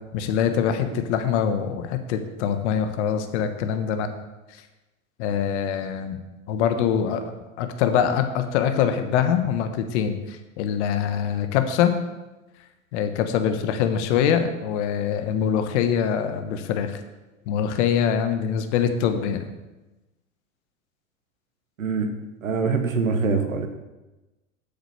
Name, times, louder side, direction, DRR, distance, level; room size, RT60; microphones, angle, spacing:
voice 1, 0.1-4.1 4.5-4.6 5.2-6.2 6.5-7.3 7.6-11.9 12.9-17.0 17.5-19.5, left 8 dB, 60° left, 8 dB, 1.2 m, -24 dB
voice 2, 21.8-22.1 22.4-23.7, right 4 dB, 85° right, 7 dB, 1.3 m, -24 dB
8.0 x 6.5 x 6.7 m, 1.1 s
hypercardioid pair, 90°, 39 cm